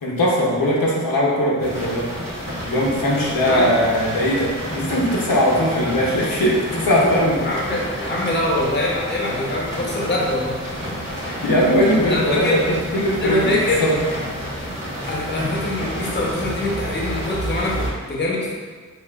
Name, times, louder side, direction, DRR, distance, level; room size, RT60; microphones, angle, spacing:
voice 1, 0.0-2.1 2.7-7.4 11.2-12.6 12.9-13.5 13.8-14.0 15.0-15.2, equal, 80° left, -5 dB, 0.7 m, -19 dB
sound 1, 1.6-17.9, equal, 80° right, 1.4 m, -30 dB
voice 2, 7.4-10.7 12.1-12.7 13.2-13.8 15.1-18.5, left 2 dB, 35° left, -3 dB, 0.6 m, -24 dB
4.4 x 2.3 x 2.3 m, 1.5 s
wide cardioid pair, 50°, 33 cm